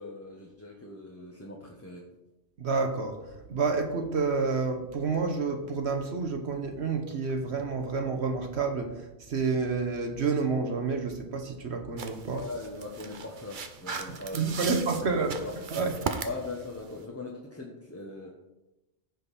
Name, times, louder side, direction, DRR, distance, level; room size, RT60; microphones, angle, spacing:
voice 1, 0.0-2.1 12.3-15.1 15.4-15.5 16.2-18.3, left 2 dB, 15° left, -1 dB, 1.0 m, -40 dB
voice 2, 2.6-3.2 3.5-12.4 14.3-15.4 15.7-15.9, right 4 dB, 65° right, 4 dB, 1.3 m, -29 dB
sound 1, 12.0-17.0, right 5 dB, 50° right, 0.9 m, -38 dB
15.0 x 5.3 x 4.2 m, 1.0 s
omnidirectional pair, 1.2 m